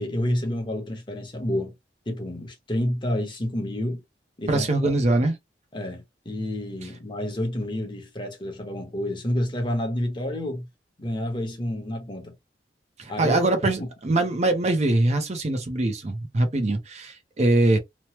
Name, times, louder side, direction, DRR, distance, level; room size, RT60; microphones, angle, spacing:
voice 1, 0.0-1.8 2.1-4.0 4.4-4.7 5.7-10.7 11.0-12.3 13.1-13.4 13.8-13.9, left 1 dB, 25° left, 0.9 m, -29 dB
voice 2, 4.5-5.4 13.0-17.8, right 2 dB, 35° right, 0.5 m, -23 dB
3.0 x 2.0 x 2.9 m
head